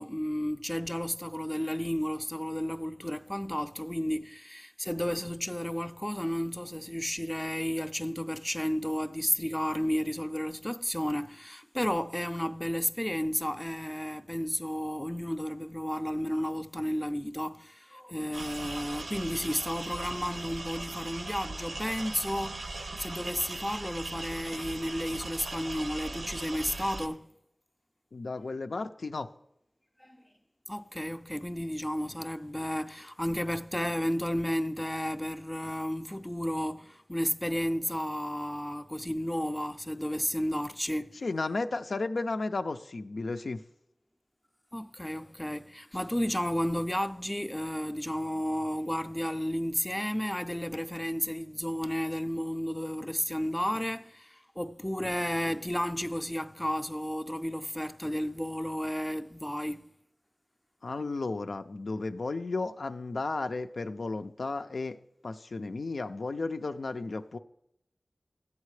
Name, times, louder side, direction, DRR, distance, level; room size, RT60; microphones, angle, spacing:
voice 1, 0.0-27.3 30.0-30.2 30.7-41.2 44.7-59.9, equal, 10° left, 0.4 m, -32 dB
sound 1, 18.3-27.1, right 2 dB, 85° right, 0.6 m, -39 dB
voice 2, 28.1-29.3 41.2-43.6 60.8-65.0 65.2-67.4, left 3 dB, 85° left, 0.4 m, -33 dB
13.5 x 8.3 x 3.2 m
wide cardioid pair, 65°, 0 cm